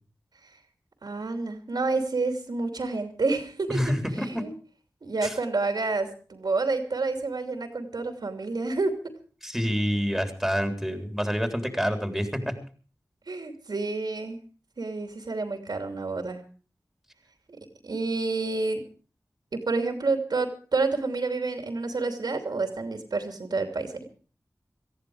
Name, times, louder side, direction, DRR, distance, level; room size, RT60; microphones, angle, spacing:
voice 1, 1.0-3.8 4.3-4.5 5.0-8.9 13.3-14.4 14.8-16.4 17.8-18.8 19.5-24.0, right 3 dB, 85° right, 6 dB, 2.9 m, -29 dB
voice 2, 3.7-4.3 5.2-5.3 9.4-12.5, equal, ahead, 6 dB, 3.6 m, -27 dB
18.5 x 14.5 x 4.9 m, 0.40 s
wide cardioid pair, 50°, 7 cm